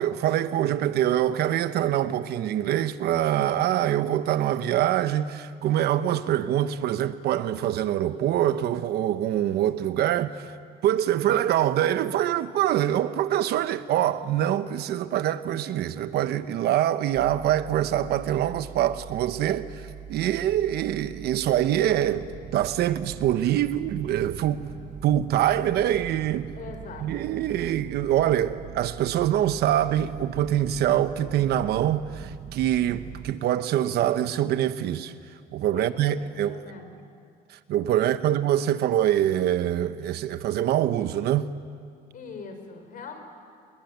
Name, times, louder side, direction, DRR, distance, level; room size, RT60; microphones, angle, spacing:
voice 1, 0.0-10.5 10.8-22.3 22.5-24.7 25.0-26.5 27.0-35.1 35.5-36.6 37.7-41.5, right 11 dB, 75° right, 1.1 m, -24 dB
sound 1, 17.2-33.3, right 8 dB, 45° right, 1.0 m, -42 dB
voice 2, 26.5-27.1 35.7-37.0 38.0-38.1 42.1-43.2, left 5 dB, 55° left, 4.9 m, -42 dB
29.5 x 21.5 x 9.4 m
cardioid pair, 110°, 17 cm